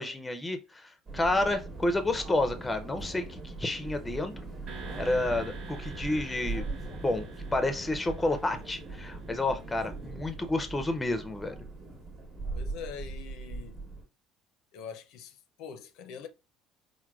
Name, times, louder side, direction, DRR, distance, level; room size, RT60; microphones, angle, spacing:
voice 1, 0.0-4.3 5.0-6.6 7.0-11.6, left 2 dB, 10° left, 0.5 m, -30 dB
sound 1, 1.1-14.0, right 2 dB, 30° right, 0.9 m, -40 dB
sound 2, 4.7-9.6, right 5 dB, 65° right, 1.1 m, -48 dB
voice 2, 12.5-13.8 14.7-16.3, left 7 dB, 70° left, 0.5 m, -43 dB
4.5 x 2.1 x 2.3 m
cardioid pair, 130°, 0 cm